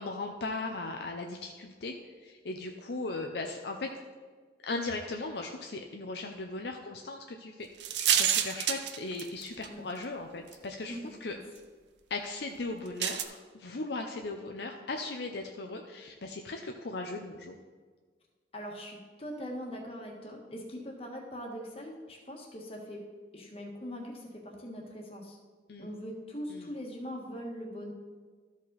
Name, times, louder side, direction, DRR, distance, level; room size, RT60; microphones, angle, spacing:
voice 1, 0.0-4.0 4.6-7.7 8.0-11.4 12.1-17.6 25.7-25.9 26.5-26.7, left 3 dB, 65° left, 3 dB, 0.6 m, -38 dB
sound 1, 7.8-9.7 10.5-10.6 13.0-13.2, right 10 dB, 75° right, 0.6 m, -28 dB
voice 2, 18.5-23.0 23.3-25.4 25.8-27.9, equal, 35° left, 0 dB, 1.4 m, -41 dB
13.0 x 5.2 x 4.0 m, 1.5 s
head